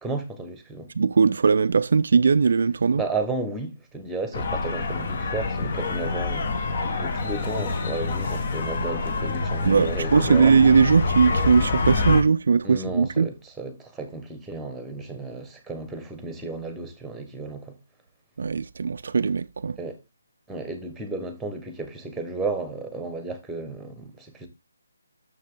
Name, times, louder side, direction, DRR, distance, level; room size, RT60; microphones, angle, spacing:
voice 1, 0.0-0.9 2.9-6.5 7.0-10.6 12.6-17.8 19.8-20.0 20.5-24.5, right 3 dB, 5° right, 1.3 m, -33 dB
voice 2, 1.0-3.0 9.6-13.3 18.4-19.8, right 5 dB, 60° right, 0.4 m, -19 dB
sound 1, 4.3-12.2, left 3 dB, 45° left, 1.6 m, -26 dB
6.9 x 6.4 x 3.8 m
figure-of-eight pair, 160°, 0 cm